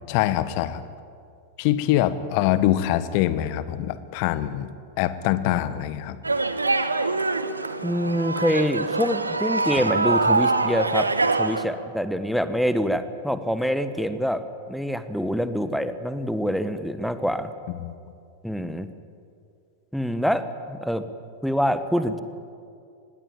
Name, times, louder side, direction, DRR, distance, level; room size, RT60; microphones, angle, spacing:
voice 1, 0.1-0.8 1.6-4.7 5.0-6.2 9.7-9.8 17.7-17.9, left 13 dB, 45° left, 14 dB, 1.4 m, -24 dB
sound 1, 6.2-11.6, right 3 dB, 80° right, 1.3 m, -24 dB
voice 2, 7.8-17.5 18.4-18.9 19.9-21.1 21.4-22.2, equal, ahead, 11 dB, 1.5 m, -25 dB
25.5 x 20.0 x 9.0 m, 2.4 s
figure-of-eight pair, 90°, 0 cm